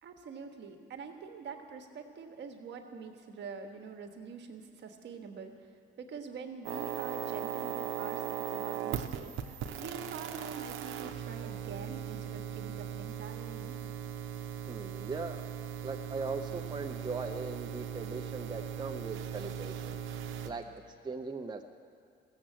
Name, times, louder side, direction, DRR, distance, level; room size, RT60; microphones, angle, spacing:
voice 1, 0.0-5.5 6.0-13.8, right 5 dB, 60° right, 4 dB, 1.4 m, -45 dB
sound 1, 6.6-20.5, right 9 dB, 80° right, 0.8 m, -39 dB
voice 2, 14.7-15.4 15.8-20.0 20.4-21.6, right 4 dB, 20° right, 4 dB, 0.6 m, -39 dB
16.0 x 7.5 x 7.6 m, 2.3 s
cardioid pair, 90°, 20 cm